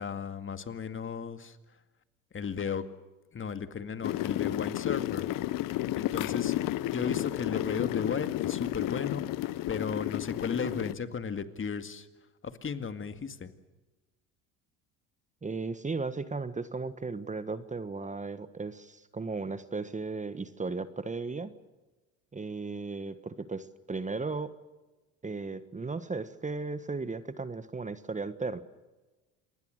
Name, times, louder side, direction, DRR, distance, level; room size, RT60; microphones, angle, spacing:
voice 1, 0.0-1.6 2.3-2.8 3.3-5.3 5.9-6.5 6.9-9.3 9.7-12.1 12.4-13.5, left 6 dB, 30° left, 10 dB, 2.1 m, -35 dB
sound 1, 4.0-10.9, left 15 dB, 55° left, 0.9 m, -32 dB
voice 2, 15.4-21.5 22.3-24.5 25.2-28.6, right 3 dB, 20° right, 13 dB, 1.4 m, -36 dB
27.5 x 21.0 x 6.6 m, 1.1 s
hypercardioid pair, 80°, 39 cm